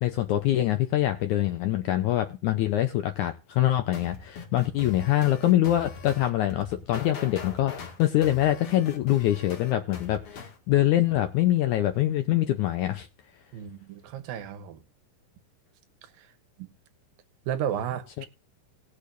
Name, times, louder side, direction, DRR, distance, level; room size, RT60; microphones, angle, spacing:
voice 1, 0.0-13.1 18.2-18.3, left 13 dB, 80° left, 1.8 m, -24 dB
sound 1, 3.9-10.6, left 5 dB, 45° left, 2.3 m, -41 dB
voice 2, 13.5-14.8 16.0-16.3 16.6-16.7 17.5-18.3, right 9 dB, 80° right, 2.7 m, -33 dB
19.5 x 6.6 x 2.6 m
omnidirectional pair, 4.2 m